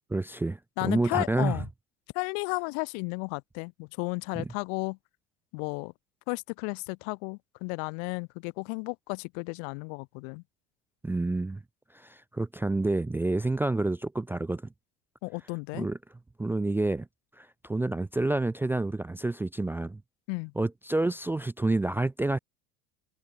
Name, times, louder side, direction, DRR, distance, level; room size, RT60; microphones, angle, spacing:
voice 1, 0.1-1.6 4.4-4.5 11.0-11.6 11.9-14.6 15.7-16.0 16.4-17.1 17.4-20.0 20.6-22.4, right 2 dB, 5° right, 0.4 m, -28 dB
voice 2, 0.8-1.7 2.1-5.0 5.5-5.9 6.3-10.4 15.2-15.9 20.3-20.5, left 40 dB or more, 75° left, 1.2 m, -33 dB
open air
supercardioid pair, 100°, 32 cm